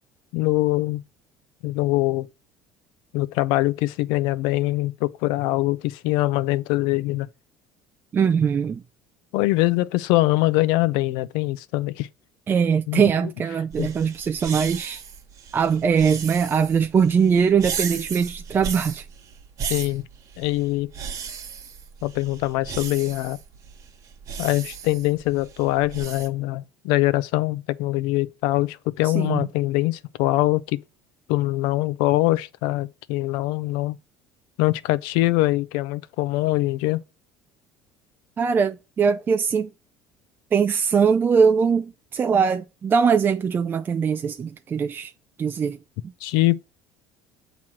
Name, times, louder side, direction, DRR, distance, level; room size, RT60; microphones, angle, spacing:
voice 1, 0.3-1.0 1.6-2.3 3.1-7.3 9.3-12.1 12.9-13.0 13.8-13.9 19.7-20.0 20.4-20.9 22.0-23.4 24.4-30.8 31.3-34.0 34.6-37.0 46.2-46.6, left 18 dB, 75° left, 0.4 m, -23 dB
voice 2, 8.1-8.8 12.5-15.0 15.5-19.1 29.0-29.5 38.4-39.7 40.5-45.1 45.4-45.8, right 6 dB, 25° right, 0.3 m, -21 dB
sound 1, 13.7-26.3, right 7 dB, 50° right, 1.3 m, -36 dB
7.2 x 3.0 x 6.0 m
supercardioid pair, 105°, 8 cm